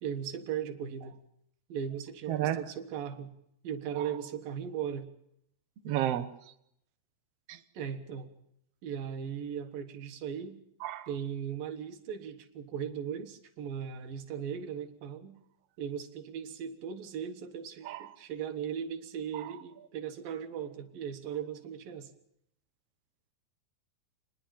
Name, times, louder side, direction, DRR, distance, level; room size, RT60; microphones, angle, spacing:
voice 1, 0.0-1.2 1.7-3.3 3.6-5.1 7.7-8.3 8.8-10.6 11.1-15.4 15.8-22.1, right 8 dB, 70° right, 7 dB, 2.9 m, -38 dB
voice 2, 2.3-2.6 5.8-6.3 7.5-7.6 10.8-11.1 17.8-18.1 19.4-19.5, right 12 dB, 85° right, 9 dB, 1.3 m, -31 dB
27.5 x 10.5 x 9.0 m, 0.76 s
omnidirectional pair, 4.4 m